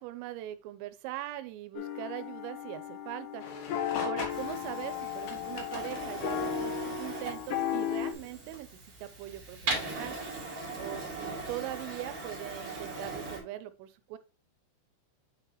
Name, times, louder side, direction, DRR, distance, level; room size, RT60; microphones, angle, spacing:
voice 1, 0.0-3.4 4.0-8.7 9.0-10.2 10.8-14.2, right 14 dB, 85° right, 12 dB, 3.1 m, -41 dB
sound 1, 1.8-8.1, left 9 dB, 85° left, 2.3 m, -35 dB
sound 2, 3.4-6.1 8.1-8.3 9.6-9.7, left 5 dB, 70° left, 2.4 m, -42 dB
Printer, 4.3-13.4, right 3 dB, 50° right, 1.7 m, -39 dB
8.9 x 3.9 x 3.0 m, 0.34 s
omnidirectional pair, 5.9 m